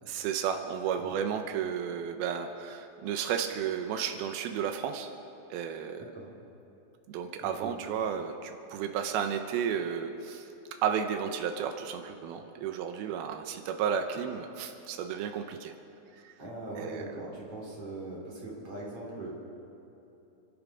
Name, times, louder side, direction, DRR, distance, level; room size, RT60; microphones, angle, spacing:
voice 1, 0.1-5.1 5.5-6.0 7.1-10.5 10.8-15.7 16.2-16.4 16.8-17.0, right 8 dB, 90° right, 6 dB, 2.2 m, -33 dB
voice 2, 7.4-7.7 16.4-19.3, right 2 dB, 35° right, -4 dB, 3.7 m, -40 dB
30.0 x 12.5 x 3.7 m, 3.0 s
omnidirectional pair, 5.3 m